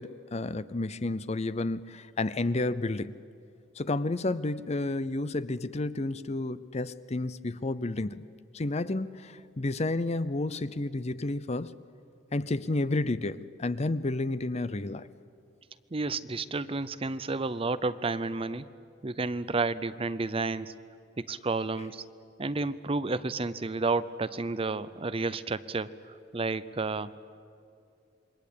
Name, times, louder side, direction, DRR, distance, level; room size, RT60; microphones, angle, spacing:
voice 1, 0.0-3.2 3.8-8.2 8.5-11.7 12.3-15.1, left 2 dB, 35° left, 0.6 m, -31 dB
voice 2, 15.9-18.7 19.0-20.7 21.2-22.0 22.4-27.1, right 3 dB, 30° right, 0.6 m, -31 dB
27.5 x 22.5 x 8.5 m
head